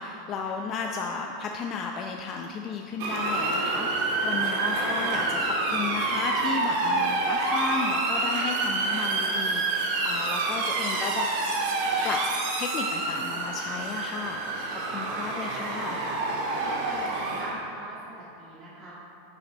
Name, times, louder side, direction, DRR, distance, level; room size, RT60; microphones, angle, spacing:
voice 1, 0.0-11.3 12.0-12.2 12.6-14.4 14.7-16.0, left 5 dB, 35° left, 2 dB, 0.6 m, -33 dB
Motor vehicle (road) / Siren, 3.0-17.5, right 3 dB, 60° right, 1.9 m, -28 dB
voice 2, 15.0-15.4 16.6-18.9, right 1 dB, 30° right, -8 dB, 1.9 m, -43 dB
10.5 x 6.3 x 4.4 m, 2.8 s
supercardioid pair, 125°, 0 cm